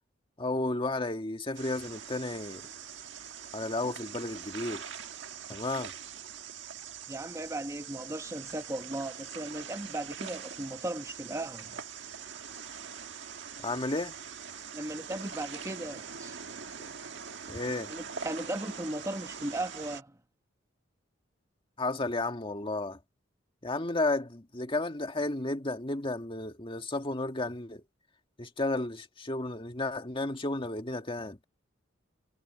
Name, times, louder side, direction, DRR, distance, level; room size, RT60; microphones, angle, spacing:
voice 1, 0.4-2.7 3.5-4.9 5.5-5.9 13.6-14.1 16.8-16.9 17.5-17.9 21.8-23.0 23.6-27.8 28.4-31.4, left 2 dB, 30° left, 1.8 m, -33 dB
sound 1, 1.5-20.0, right 7 dB, 70° right, 1.7 m, -43 dB
voice 2, 7.1-11.8 14.7-16.4 17.9-20.2, right 1 dB, 15° right, 1.3 m, -37 dB
head